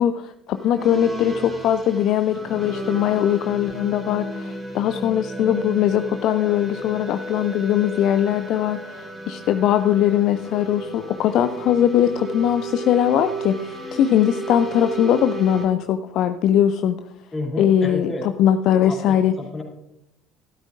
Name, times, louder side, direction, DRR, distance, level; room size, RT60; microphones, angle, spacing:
voice 1, 0.0-17.0 17.6-19.3, left 10 dB, 55° left, 10 dB, 0.4 m, -20 dB
sound 1, 0.5-15.7, right 2 dB, 15° right, 3.2 m, -34 dB
voice 2, 17.3-18.2 18.9-19.6, left 2 dB, 20° left, 0 dB, 2.9 m, -30 dB
13.0 x 12.5 x 2.5 m, 0.86 s
figure-of-eight pair, 60°, 0 cm